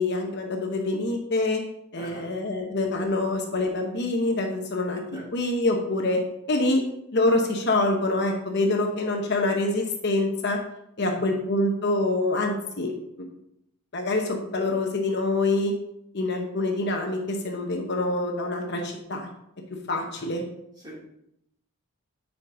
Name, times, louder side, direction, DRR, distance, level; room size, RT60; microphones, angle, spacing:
voice 1, 0.0-1.6 1.9-5.0 5.3-6.2 6.5-6.8 7.1-10.6 11.0-12.9 13.9-15.7 16.1-19.3 19.9-20.4, left 2 dB, 50° left, 2 dB, 0.9 m, -25 dB
voice 2, 2.0-2.3 5.1-5.2 11.0-11.3 20.2-20.3 20.8-21.0, right 1 dB, 20° right, -7 dB, 2.9 m, -42 dB
8.2 x 4.9 x 3.8 m, 0.78 s
head